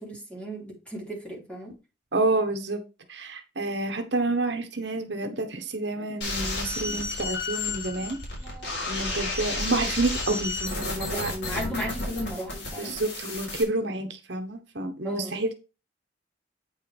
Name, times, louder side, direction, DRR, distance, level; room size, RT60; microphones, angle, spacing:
voice 1, 0.0-1.7 8.4-8.7 10.9-13.0 15.0-15.3, equal, 5° left, -3 dB, 3.5 m, -35 dB
voice 2, 2.1-2.8 3.1-8.2 8.9-11.3 12.8-15.5, right 2 dB, 65° right, 6 dB, 1.2 m, -29 dB
sound 1, 6.2-13.6, left 2 dB, 75° left, 4.0 m, -32 dB
8.9 x 5.6 x 3.4 m, 0.29 s
head